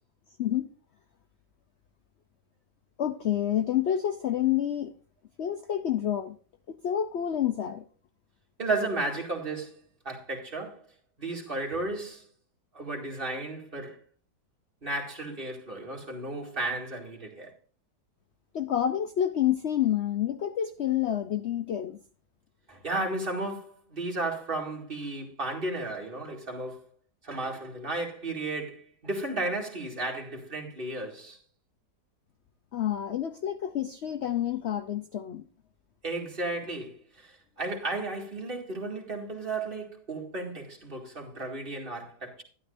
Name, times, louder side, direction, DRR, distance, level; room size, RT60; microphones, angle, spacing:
voice 1, 3.0-4.9 5.4-6.4 6.7-7.8 18.5-22.0 32.7-35.4, left 10 dB, 65° left, 0.6 m, -28 dB
voice 2, 8.6-10.8 11.2-12.2 12.7-14.0 14.8-17.5 22.7-26.8 27.2-31.4 36.0-42.4, right 2 dB, 30° right, 2.3 m, -34 dB
12.5 x 11.5 x 2.6 m
omnidirectional pair, 1.8 m